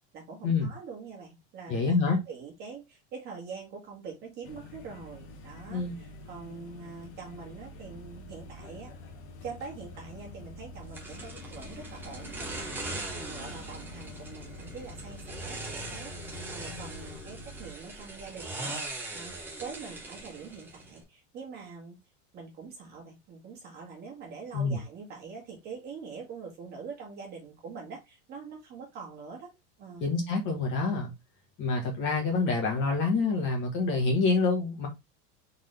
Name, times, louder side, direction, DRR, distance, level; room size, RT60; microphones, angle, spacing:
voice 1, 0.1-8.9 9.4-19.3 19.6-22.0 22.3-29.5 29.8-30.1, right 5 dB, 30° right, 1.6 m, -44 dB
voice 2, 1.7-2.2 5.7-5.9 24.5-24.8 30.0-31.1 31.6-34.9, left 4 dB, 35° left, 1.2 m, -27 dB
sound 1, 4.4-17.7, left 2 dB, 65° left, 1.2 m, -46 dB
sound 2, 10.9-21.0, right 2 dB, 5° right, 0.7 m, -41 dB
4.0 x 3.6 x 3.2 m
supercardioid pair, 175°, 36 cm